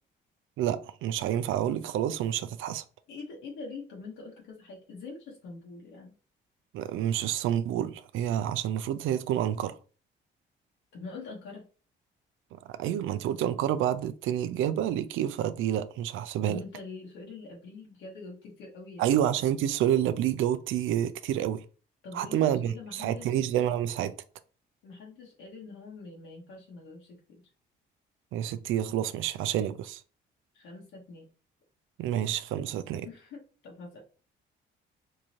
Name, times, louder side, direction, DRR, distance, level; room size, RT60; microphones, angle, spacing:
voice 1, 0.6-2.8 6.7-9.8 12.5-16.6 19.0-21.6 22.1-24.1 28.3-30.0 32.0-33.1, right 11 dB, 80° right, 0.4 m, -28 dB
voice 2, 3.1-6.1 10.9-11.6 16.4-19.2 22.0-23.3 24.8-27.4 30.5-31.3 33.0-34.0, left 4 dB, 90° left, 1.3 m, -44 dB
3.6 x 2.7 x 2.9 m
cardioid pair, 90°, 20 cm